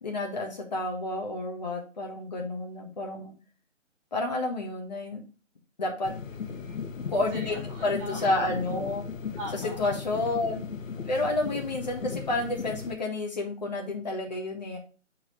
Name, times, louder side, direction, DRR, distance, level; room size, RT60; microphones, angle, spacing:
voice 1, 0.0-3.3 4.1-5.2 5.8-6.1 7.1-7.6 7.8-9.0 9.8-10.6 11.1-14.8, left 2 dB, 35° left, 1 dB, 1.7 m, -30 dB
sound 1, 6.0-13.0, left 6 dB, 85° left, 0.8 m, -37 dB
voice 2, 6.3-6.9 7.3-8.3 9.4-10.2 11.0-11.3, equal, 25° right, -3 dB, 2.7 m, -42 dB
8.5 x 4.5 x 3.2 m, 0.36 s
hypercardioid pair, 175°, 38 cm